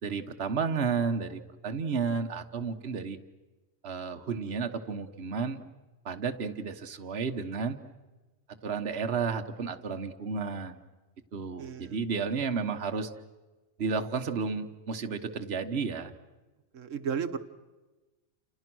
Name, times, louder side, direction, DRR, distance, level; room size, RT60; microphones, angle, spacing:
voice 1, 0.0-3.2 3.8-5.6 6.0-7.8 8.6-10.8 11.3-13.1 13.8-16.1, right 5 dB, 55° right, 6 dB, 1.5 m, -32 dB
voice 2, 11.6-12.0 16.7-17.4, right 7 dB, 85° right, 11 dB, 1.5 m, -34 dB
30.0 x 28.0 x 6.2 m, 1.2 s
omnidirectional pair, 1.3 m